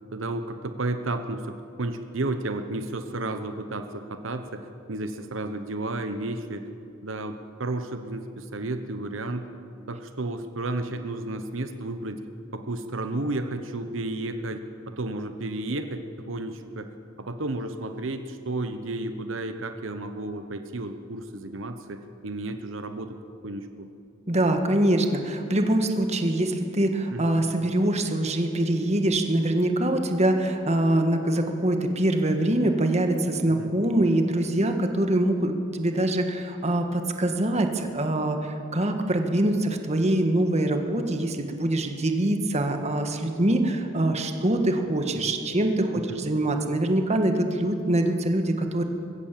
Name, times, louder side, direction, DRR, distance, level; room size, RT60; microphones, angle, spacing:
voice 1, 0.1-4.6 4.9-6.7 7.0-9.5 9.9-12.2 12.5-16.9 17.2-23.2 23.4-23.9 27.1-27.2 33.5-33.7 46.1-46.3, right 2 dB, 85° right, 8 dB, 1.1 m, -32 dB
voice 2, 24.3-48.8, right 1 dB, 35° right, 5 dB, 1.6 m, -24 dB
21.5 x 16.0 x 7.5 m, 2.6 s
head